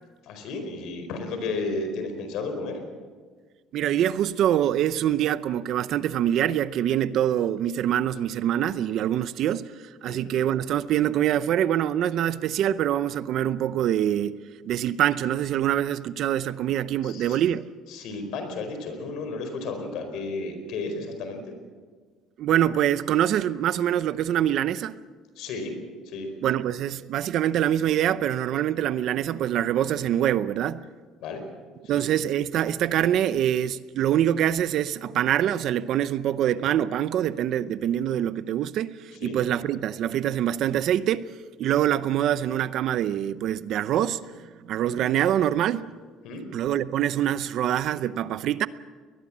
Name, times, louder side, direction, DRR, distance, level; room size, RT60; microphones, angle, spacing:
voice 1, 0.2-2.8 10.0-10.2 17.0-17.4 17.9-21.5 25.4-25.8 26.0-26.3 31.2-31.4 31.9-32.0 39.2-39.4 46.2-46.4, left 3 dB, 60° left, 4.6 m, -33 dB
voice 2, 3.7-14.4 14.6-17.7 22.4-25.0 26.4-30.8 31.9-41.3 41.6-44.3 44.7-45.9 46.5-48.7, right 11 dB, 50° right, 0.6 m, -25 dB
22.0 x 20.5 x 7.4 m
cardioid pair, 170°, 0 cm